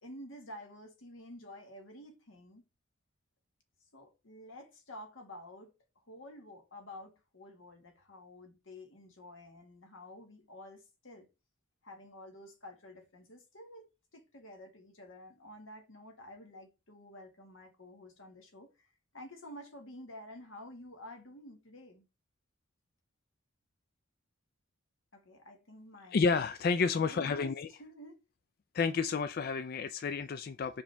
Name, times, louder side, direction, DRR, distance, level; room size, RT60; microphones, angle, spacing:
voice 1, 0.0-2.7 3.9-11.3 11.8-18.9 19.1-22.1 25.1-26.3 27.0-27.5 27.8-28.2, left 1 dB, 85° left, 1.6 m, -50 dB
voice 2, 26.1-27.7 28.7-30.8, left 5 dB, 50° left, 0.3 m, -30 dB
6.0 x 5.0 x 3.3 m
head